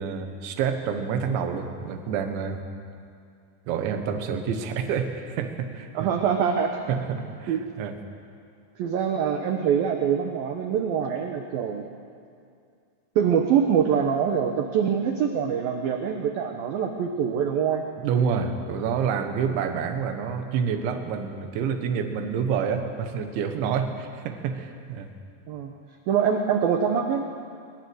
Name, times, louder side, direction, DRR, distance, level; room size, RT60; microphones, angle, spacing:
voice 1, 0.0-2.6 3.7-6.1 6.9-8.0 18.0-25.1, right 6 dB, 70° right, 6 dB, 3.6 m, -28 dB
voice 2, 5.9-6.7 7.5-7.6 8.8-11.9 13.2-17.8 25.5-25.7 26.1-27.3, right 7 dB, 90° right, 4 dB, 2.0 m, -24 dB
22.0 x 21.0 x 8.0 m, 2.4 s
omnidirectional pair, 5.8 m